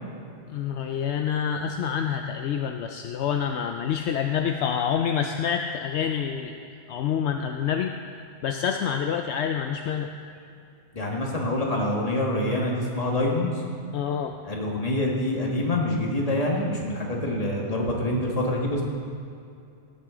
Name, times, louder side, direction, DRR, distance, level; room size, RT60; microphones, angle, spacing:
voice 1, 0.5-7.9 8.4-10.1 13.9-14.4, left 8 dB, 75° left, 5 dB, 0.8 m, -27 dB
voice 2, 10.9-13.6 14.4-18.8, left 1 dB, 35° left, -2 dB, 1.6 m, -26 dB
16.0 x 8.2 x 3.8 m, 2.5 s
omnidirectional pair, 1.2 m